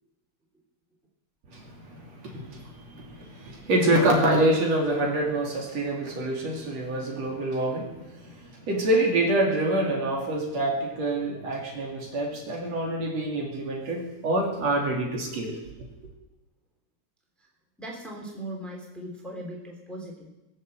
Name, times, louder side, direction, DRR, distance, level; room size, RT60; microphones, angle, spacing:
voice 1, 1.5-16.1, right 1 dB, 60° right, -1 dB, 3.7 m, -26 dB
voice 2, 17.8-20.3, right 1 dB, ahead, -1 dB, 2.7 m, -39 dB
22.0 x 7.3 x 7.8 m, 1.0 s
omnidirectional pair, 3.5 m